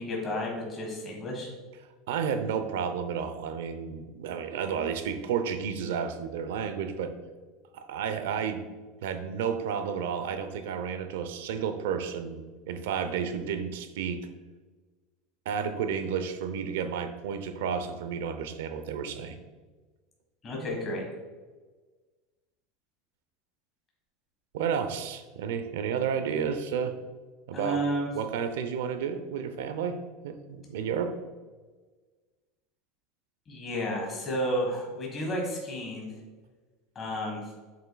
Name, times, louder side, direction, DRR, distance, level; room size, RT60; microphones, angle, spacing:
voice 1, 0.0-1.5 20.4-21.0 27.5-28.1 33.5-36.1 36.9-37.4, equal, 20° left, -1 dB, 1.5 m, -31 dB
voice 2, 2.1-7.1 7.7-8.6 9.0-14.3 15.5-19.4 24.5-27.0 27.5-27.8 28.1-31.1, right 7 dB, 90° right, 9 dB, 0.6 m, -31 dB
7.3 x 5.7 x 2.3 m, 1.3 s
supercardioid pair, 175°, 0 cm